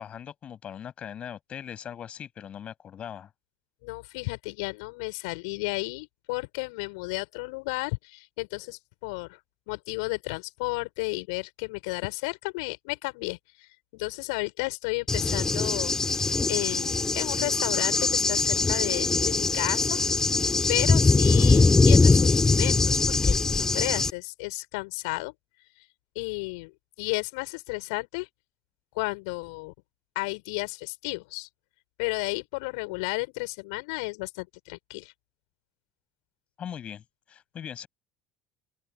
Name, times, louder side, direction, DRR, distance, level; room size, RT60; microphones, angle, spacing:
voice 1, 0.0-3.3 36.6-37.0 37.3-37.9, left 9 dB, 40° left, 6.9 m, -40 dB
voice 2, 3.8-9.4 9.7-20.0 20.4-25.3 26.1-26.7 27.0-28.3 28.9-29.7 30.1-31.5 32.0-35.1, left 27 dB, 65° left, 5.9 m, -33 dB
Cricket / Thunder, 15.1-24.1, left 3 dB, 15° left, 3.1 m, -22 dB
open air
figure-of-eight pair, 65°, 3 cm